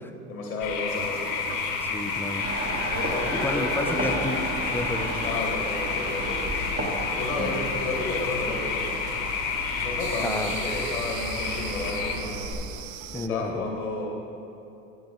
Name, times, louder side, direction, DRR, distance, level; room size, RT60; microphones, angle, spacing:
voice 1, 0.3-1.5 2.9-4.1 5.2-6.5 7.2-9.0 9.8-12.7 13.1-14.0, left 2 dB, 90° left, 0 dB, 1.8 m, -32 dB
sound 1, 0.6-12.2, left 6 dB, 50° left, 1.7 m, -30 dB
sound 2, 0.9-13.3, right 10 dB, 75° right, 0.6 m, -41 dB
voice 2, 1.8-2.5 3.3-5.4 10.2-10.6 13.1-13.6, left 2 dB, 5° left, 6 dB, 0.6 m, -32 dB
sound 3, 2.4-12.5, right 1 dB, 25° right, 2.3 m, -34 dB
11.0 x 9.1 x 3.8 m, 2.8 s
hypercardioid pair, 80°, 41 cm